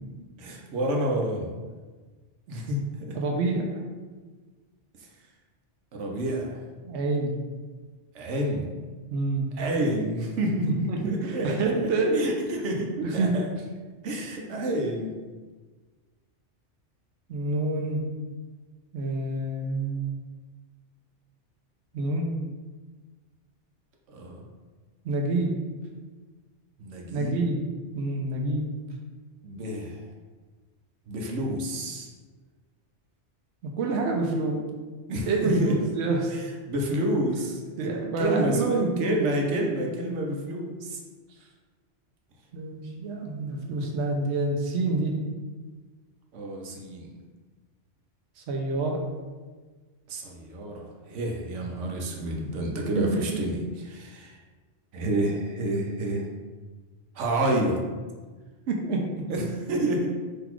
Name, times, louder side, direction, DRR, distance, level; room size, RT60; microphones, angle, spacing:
voice 1, 0.4-1.5 2.5-3.2 5.0-5.1 5.9-6.6 8.1-8.7 9.6-13.5 14.0-15.2 24.1-24.4 26.8-27.4 29.4-30.0 31.1-32.1 35.1-35.7 36.3-37.9 38.2-41.0 46.3-47.1 50.1-54.4 54.9-56.3 57.1-57.8 59.3-60.1, right 1 dB, 90° right, 0 dB, 1.1 m, -29 dB
voice 2, 3.1-3.8 6.8-7.3 9.1-9.5 10.6-12.3 12.8-13.4 17.3-18.0 18.9-20.2 21.9-22.3 25.0-25.5 27.1-27.6 27.9-28.7 33.6-34.6 35.3-36.3 37.8-39.2 42.5-45.1 48.4-49.0 53.0-53.4 58.7-59.1, right 3 dB, 70° right, 1 dB, 0.9 m, -27 dB
3.9 x 2.9 x 4.5 m, 1.4 s
omnidirectional pair, 1.2 m